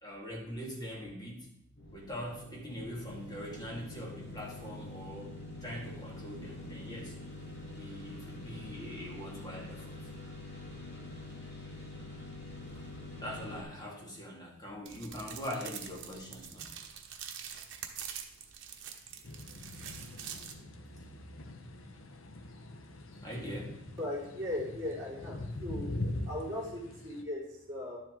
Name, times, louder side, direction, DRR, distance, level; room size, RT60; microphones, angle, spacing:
voice 1, 0.0-1.5 1.9-5.3 5.6-7.1 7.8-10.0 12.7-12.9 13.1-16.8 20.3-20.4 23.2-23.8, equal, 20° left, -2 dB, 2.2 m, -42 dB
sound 1, 1.8-13.6, left 2 dB, 55° left, 2.3 m, -45 dB
sound 2, 14.9-20.5, right 8 dB, 60° right, 1.1 m, -45 dB
sound 3, 19.2-27.2, left 2 dB, 75° left, 0.9 m, -42 dB
voice 2, 24.0-25.9 26.3-28.0, left 1 dB, 15° right, -10 dB, 4.0 m, -38 dB
11.5 x 7.4 x 3.8 m, 0.77 s
head